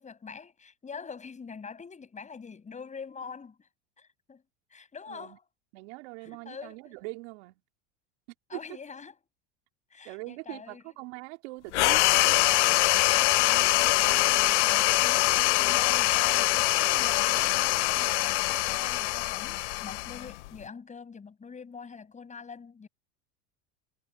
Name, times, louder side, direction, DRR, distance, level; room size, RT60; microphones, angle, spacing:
voice 1, 0.0-3.7 4.0-4.4 4.7-5.4 6.2-6.9 8.5-9.2 9.9-10.8 12.2-22.9, left 5 dB, 20° left, 7.4 m, -44 dB
voice 2, 5.1-5.4 5.7-7.6 8.5-8.6 10.0-12.6, right 26 dB, 70° right, 3.1 m, -42 dB
sound 1, 11.7-20.6, left 21 dB, 80° left, 0.6 m, -24 dB
supercardioid pair, 110°, 34 cm